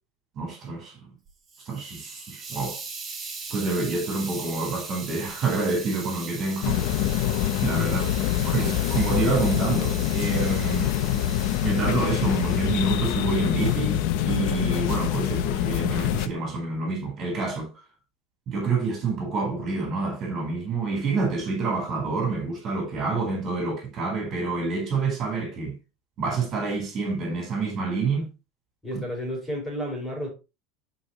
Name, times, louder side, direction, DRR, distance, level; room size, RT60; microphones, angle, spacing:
voice 1, 0.4-0.9 1.7-2.8 3.5-6.8 7.6-8.1 8.4-10.9 11.6-17.7 18.5-25.8 26.2-28.3, right 3 dB, 35° right, 4.3 m, -27 dB
Hiss, 1.3-13.0 13.6-13.9, right 4 dB, 20° right, 4.2 m, -40 dB
sound 1, 6.6-16.3, left 12 dB, 65° left, 0.8 m, -25 dB
voice 2, 28.8-30.3, equal, 10° left, 5.8 m, -31 dB
11.5 x 5.2 x 3.1 m
supercardioid pair, 135°, 0 cm